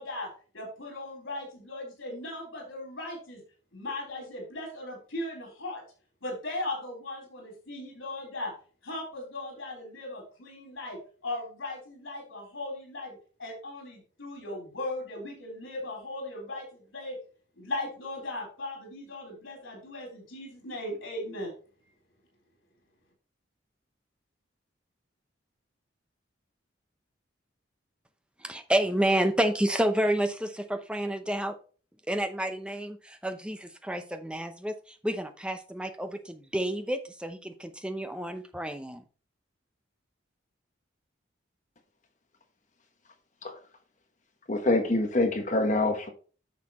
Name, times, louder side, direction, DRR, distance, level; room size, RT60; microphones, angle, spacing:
voice 1, 0.0-3.4 3.7-5.8 6.2-8.5 8.8-17.2 17.6-21.5, left 2 dB, 85° left, 3.7 m, -38 dB
voice 2, 28.4-31.6 32.1-39.0, right 1 dB, 5° right, 0.7 m, -29 dB
voice 3, 44.5-46.1, left 2 dB, 40° left, 1.2 m, -25 dB
9.7 x 6.6 x 3.0 m
head